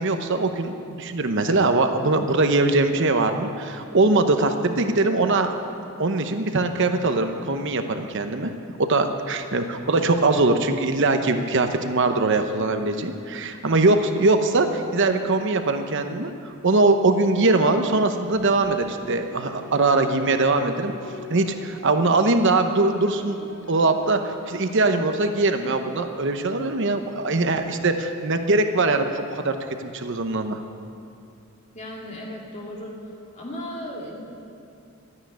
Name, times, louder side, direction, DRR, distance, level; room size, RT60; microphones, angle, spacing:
voice 1, 0.0-5.5 6.0-8.5 8.8-20.9 21.3-23.4 23.7-30.6, right 2 dB, 60° right, 7 dB, 0.9 m, -22 dB
sound 1, 18.3-26.0, left 2 dB, 75° left, 2.9 m, -44 dB
voice 2, 31.7-33.0 33.3-34.2, left 1 dB, 35° left, -3 dB, 2.8 m, -35 dB
13.0 x 9.8 x 9.7 m, 2.7 s
head